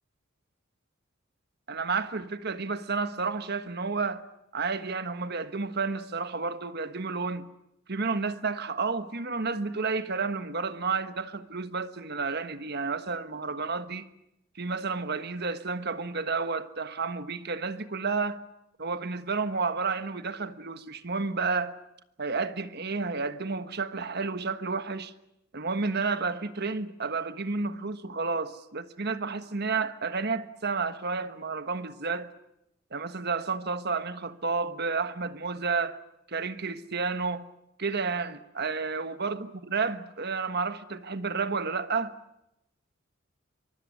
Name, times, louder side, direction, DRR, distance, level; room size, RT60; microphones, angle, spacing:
voice 1, 1.7-4.2 4.5-7.5 7.9-14.1 14.5-18.4 18.8-21.8 22.2-25.1 25.5-32.3 32.9-36.0 36.3-37.5 37.8-42.1, right 4 dB, 55° right, 1.4 m, -31 dB
24.5 x 24.0 x 9.4 m
head